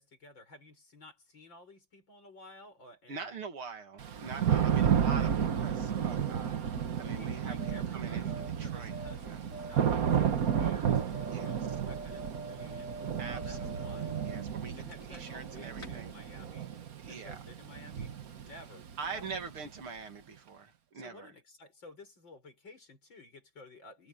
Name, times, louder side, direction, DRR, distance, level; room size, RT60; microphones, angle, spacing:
voice 1, 0.0-3.4 4.8-5.3 7.2-12.9 13.3-14.2 14.8-16.7 17.1-18.1 18.4-18.8 19.1-19.3 20.9-24.1, left 2 dB, 60° left, 7.6 m, -53 dB
voice 2, 3.1-8.9 9.2-9.4 11.3-11.5 13.2-14.8 15.1-16.2 17.0-17.4 19.0-21.3, right 5 dB, 80° right, 3.2 m, -44 dB
Thunder / Rain, 4.0-19.8, right 8 dB, 50° right, 1.5 m, -32 dB
sound 1, 7.6-15.5 15.7-15.9, right 2 dB, 30° left, 2.2 m, -46 dB
omnidirectional pair, 2.3 m